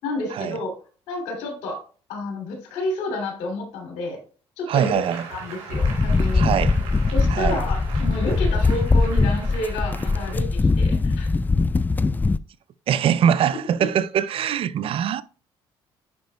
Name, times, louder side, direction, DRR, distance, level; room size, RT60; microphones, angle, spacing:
voice 1, 0.0-0.7 1.1-1.8 2.1-4.2 4.6-5.0 5.3-6.5 7.1-11.4, left 2 dB, 85° left, 2.7 m, -30 dB
voice 2, 4.7-5.2 6.3-6.8 7.3-7.6 12.9-15.2, right 9 dB, 55° right, 0.4 m, -22 dB
Applause, 4.7-10.3, right 5 dB, 80° right, 3.2 m, -39 dB
sound 1, 5.7-12.4, left 3 dB, 15° left, 0.3 m, -21 dB
10.5 x 5.1 x 2.2 m
cardioid pair, 90°, 11 cm